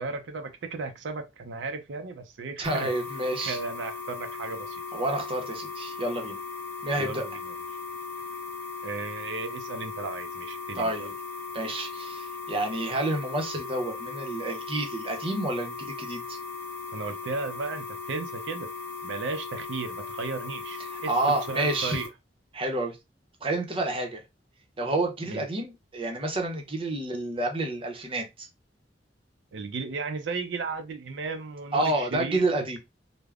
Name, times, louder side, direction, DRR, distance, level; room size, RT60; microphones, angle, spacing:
voice 1, 0.0-2.9 3.4-4.8 7.0-7.5 8.8-11.1 16.9-18.7 19.0-22.1 25.2-25.5 29.5-32.8, right 4 dB, 80° right, 0.4 m, -35 dB
sound 1, 2.6-22.1, left 4 dB, 10° left, 0.9 m, -38 dB
voice 2, 2.6-3.6 4.9-6.4 6.8-7.2 10.7-11.1 11.5-16.4 21.1-22.0 22.5-23.0 23.4-24.2 24.8-28.5 31.7-32.8, right 2 dB, 30° right, 0.7 m, -29 dB
3.4 x 2.1 x 2.3 m
head